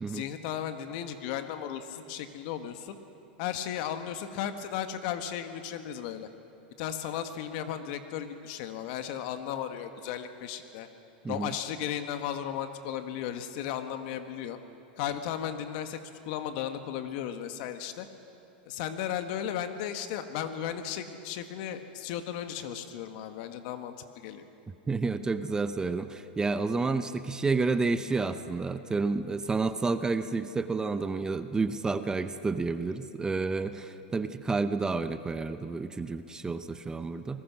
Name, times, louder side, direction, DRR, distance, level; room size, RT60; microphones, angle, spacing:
voice 1, 0.1-3.0 3.4-6.3 6.8-10.9 11.3-14.6 15.0-16.0 16.2-18.1 18.7-24.4, left 9 dB, 55° left, 8 dB, 1.6 m, -35 dB
voice 2, 24.9-37.4, right 4 dB, 15° right, 11 dB, 0.7 m, -30 dB
25.0 x 21.0 x 6.2 m, 2.7 s
hypercardioid pair, 120°, 5 cm